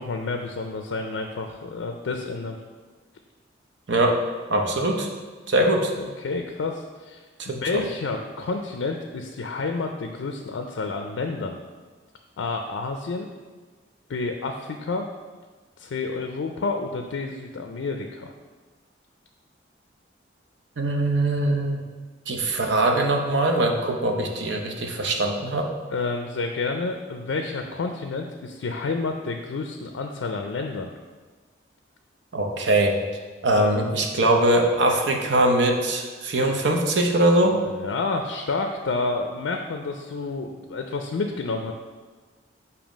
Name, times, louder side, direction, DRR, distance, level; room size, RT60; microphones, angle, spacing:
voice 1, 0.0-2.6 6.0-11.6 12.4-13.3 14.1-15.1 15.8-18.3 25.9-30.9 37.6-41.7, left 3 dB, 85° left, 4 dB, 0.4 m, -29 dB
voice 2, 3.9-4.2 4.5-5.1 5.5-5.9 7.4-7.8 20.8-21.8 22.3-25.7 32.3-33.0 33.4-37.6, right 1 dB, 70° right, 3 dB, 0.7 m, -22 dB
7.1 x 2.8 x 5.1 m, 1.4 s
head